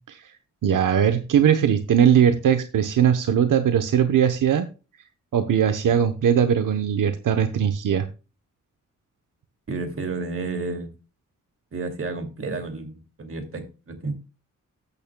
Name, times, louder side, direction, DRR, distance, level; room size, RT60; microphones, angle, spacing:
voice 1, 0.6-4.7 5.3-8.0, right 8 dB, 85° right, 9 dB, 1.0 m, -20 dB
voice 2, 9.7-10.9 11.7-14.1, right 3 dB, 45° right, 6 dB, 2.5 m, -31 dB
13.5 x 8.5 x 2.3 m, 0.31 s
wide cardioid pair, 135°, 31 cm